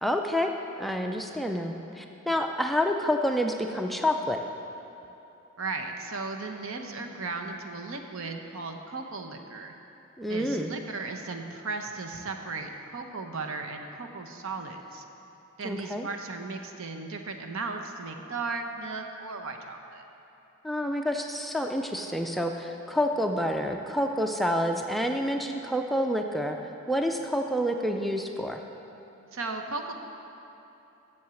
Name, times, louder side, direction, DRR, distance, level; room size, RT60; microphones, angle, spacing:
voice 1, 0.0-0.5 0.8-4.4 10.2-10.7 15.6-16.1 20.6-26.6 26.9-28.6, equal, ahead, 3 dB, 0.3 m, -28 dB
voice 2, 5.6-9.7 10.3-15.0 15.6-20.0 29.3-29.9, right 3 dB, 70° right, 4 dB, 0.8 m, -36 dB
7.8 x 7.1 x 6.9 m, 3.0 s
head